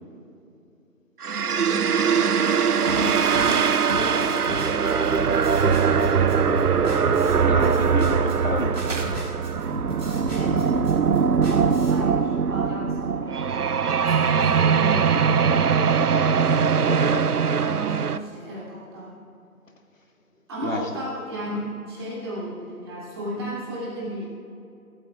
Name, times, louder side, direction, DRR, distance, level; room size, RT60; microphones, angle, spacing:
sound 1, 1.2-18.2, right 6 dB, 80° right, 0.7 m, -21 dB
voice 1, 1.6-2.5 2.8-7.0 9.8-10.9 11.8-13.3 14.0-15.3 17.6-19.1 20.5-24.3, right 1 dB, 15° right, -8 dB, 2.9 m, -34 dB
sound 2, 2.8-12.0, left 1 dB, 5° left, 3.4 m, -35 dB
sound 3, 3.2-5.4 8.7-9.1, right 3 dB, 55° right, 1.4 m, -38 dB
voice 2, 7.4-8.9 16.8-17.3 20.6-20.8, left 3 dB, 60° left, 3 dB, 1.9 m, -30 dB
24.0 x 13.5 x 2.4 m, 2.6 s
figure-of-eight pair, 165°, 45 cm